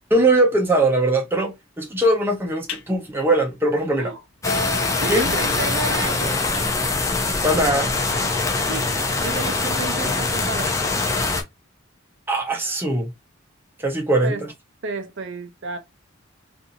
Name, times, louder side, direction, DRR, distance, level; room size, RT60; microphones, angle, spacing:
voice 1, 0.1-4.1 5.1-5.3 7.4-7.9 12.3-13.1 13.8-14.5, right 1 dB, 10° right, 0.8 m, -20 dB
sound 1, 2.4-2.9 3.3-3.5 3.9-4.0 4.2-4.3 4.9-7.4, left 5 dB, 85° left, 0.6 m, -37 dB
Keyboard (musical), 4.4-7.9, left 2 dB, 45° left, 1.3 m, -35 dB
sound 2, 4.4-11.4, left 3 dB, 15° left, 0.4 m, -23 dB
voice 2, 5.0-6.5 8.7-8.9 9.2-10.8 14.2-14.4 14.8-15.8, right 3 dB, 60° right, 0.5 m, -31 dB
2.6 x 2.6 x 2.6 m
head